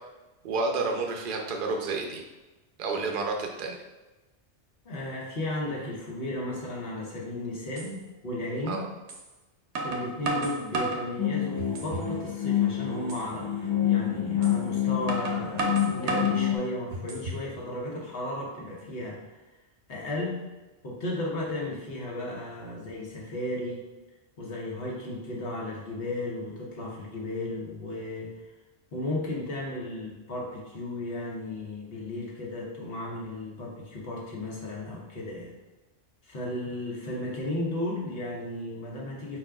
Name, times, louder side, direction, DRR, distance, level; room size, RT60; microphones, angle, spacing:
voice 1, 0.4-2.2 2.8-3.8 8.7-8.8, right 3 dB, 55° right, 2 dB, 0.7 m, -30 dB
voice 2, 4.8-8.9 9.8-19.2 19.9-20.5 20.8-23.8 24.4-28.3 28.9-35.5 36.2-39.4, left 1 dB, 60° left, -3 dB, 1.2 m, -34 dB
sound 1, 7.2-7.3 7.8-7.9 9.1-9.2 9.7-11.1 11.6-12.1 12.5-12.6 13.1-13.3 14.4-14.6 15.1-16.4 16.9-17.5, right 2 dB, 75° right, 1.0 m, -32 dB
sound 2, 11.2-16.6, left 10 dB, 20° left, 0.5 m, -27 dB
5.0 x 4.2 x 2.3 m, 1.1 s
omnidirectional pair, 1.2 m